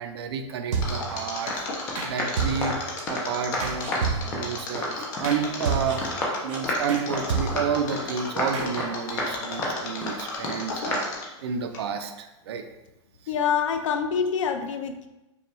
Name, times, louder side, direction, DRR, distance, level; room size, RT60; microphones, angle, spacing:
voice 1, 0.0-2.8 3.1-3.9 4.3-6.1 6.4-11.1 11.4-12.6, right 6 dB, 55° right, 7 dB, 0.4 m, -30 dB
sound 1, 0.7-1.2 1.9-2.1 2.4-3.0 3.6-4.5 5.2-5.4 5.6-6.2 6.5-6.6 6.9-7.0 7.3-7.8 8.5-8.7, right 5 dB, 85° right, 0.8 m, -29 dB
Mechanisms, 0.8-11.4 11.7-11.8, left 3 dB, 40° left, 0.8 m, -34 dB
sound 2, 1.1-1.2 1.5-1.6 1.9-3.3 3.5-4.1 4.3-5.3 5.6-5.7 6.0-6.9 7.1-7.2 7.5-8.1 8.4-8.9 9.2-9.3 9.6-10.2 10.4-10.6 10.9-11.0, left 1 dB, 10° left, 0.4 m, -30 dB
voice 2, 13.3-15.1, left 7 dB, 80° left, 7 dB, 0.5 m, -26 dB
5.3 x 2.2 x 3.1 m, 0.98 s
supercardioid pair, 175°, 16 cm